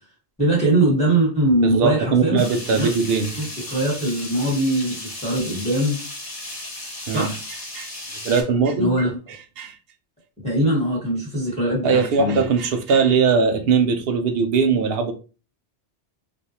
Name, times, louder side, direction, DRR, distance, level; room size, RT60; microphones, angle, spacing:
voice 1, 0.4-2.4 2.7-2.9 3.4-6.0 7.1-7.4 8.8-9.2 10.4-12.4, right 1 dB, 5° left, -5 dB, 1.1 m, -21 dB
voice 2, 1.6-3.3 7.1-7.3 7.7-7.9 8.2-8.9 9.6-9.7 11.8-15.1, right 5 dB, 65° right, 6 dB, 0.8 m, -20 dB
sound 1, 2.4-8.4, left 1 dB, 35° left, 1.0 m, -35 dB
3.3 x 2.6 x 2.8 m, 0.34 s
omnidirectional pair, 1.2 m